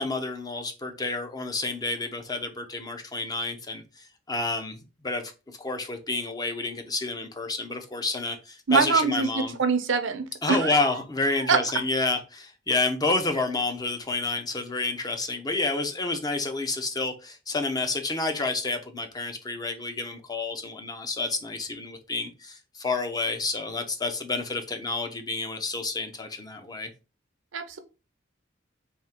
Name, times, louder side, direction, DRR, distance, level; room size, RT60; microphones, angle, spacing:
voice 1, 0.0-3.8 4.3-5.3 5.6-9.6 10.4-26.9, left 3 dB, 20° left, 0.6 m, -29 dB
voice 2, 8.7-10.8 11.5-11.6 27.5-27.8, right 4 dB, 85° right, 0.7 m, -24 dB
3.5 x 2.7 x 4.2 m
head